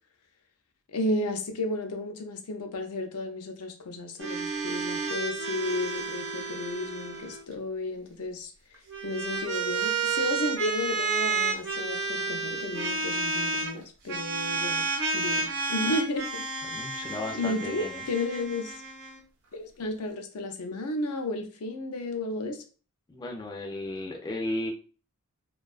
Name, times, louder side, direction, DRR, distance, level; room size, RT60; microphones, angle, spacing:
voice 1, 0.9-8.5 9.0-14.8 15.1-16.8 17.3-18.8 19.5-22.6, left 2 dB, 75° left, 5 dB, 0.5 m, -33 dB
sound 1, 4.2-7.4 8.7-13.7 14.1-19.2, right 4 dB, 60° right, 0.6 m, -31 dB
voice 2, 16.7-18.0 23.1-24.7, left 1 dB, 20° left, 1 dB, 0.3 m, -34 dB
2.5 x 2.2 x 2.3 m, 0.37 s
head